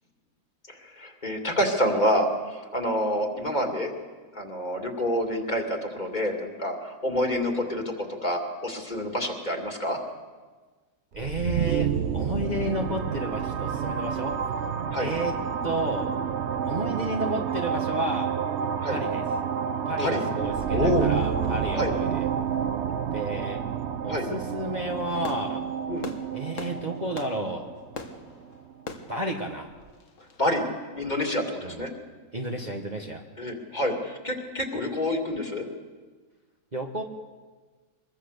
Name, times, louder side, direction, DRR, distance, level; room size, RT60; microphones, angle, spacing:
voice 1, 0.7-3.9 4.3-10.0 14.9-15.1 18.8-19.0 20.0-20.2 20.7-21.1 21.7-21.9 24.1-24.3 25.9-26.1 30.4-30.6 30.9-31.9 33.4-35.7, left 1 dB, 30° left, 2 dB, 2.5 m, -28 dB
voice 2, 11.1-14.4 15.0-16.2 16.6-18.4 18.9-19.2 19.8-22.3 23.1-23.6 24.0-25.7 26.3-27.7 29.1-29.7 31.6-31.9 32.3-33.2 36.7-37.0, right 1 dB, 30° right, 1 dB, 1.5 m, -31 dB
sound 1, 11.1-28.8, right 7 dB, 50° right, 1.0 m, -29 dB
Fireworks, 24.9-30.5, left 3 dB, 55° left, 1.8 m, -43 dB
25.0 x 22.0 x 6.7 m, 1.4 s
omnidirectional pair, 1.6 m